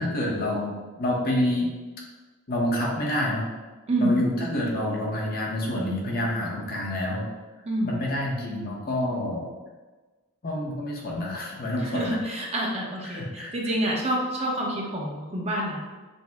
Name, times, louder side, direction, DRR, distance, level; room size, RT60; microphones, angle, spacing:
voice 1, 0.0-1.7 2.5-3.5 4.0-7.3 7.8-9.5 10.4-12.2 13.0-13.5, left 1 dB, 50° left, -2 dB, 0.8 m, -28 dB
voice 2, 3.9-4.2 7.6-7.9 11.8-15.8, right 1 dB, 30° right, -2 dB, 0.8 m, -28 dB
5.3 x 2.1 x 3.5 m, 1.3 s
head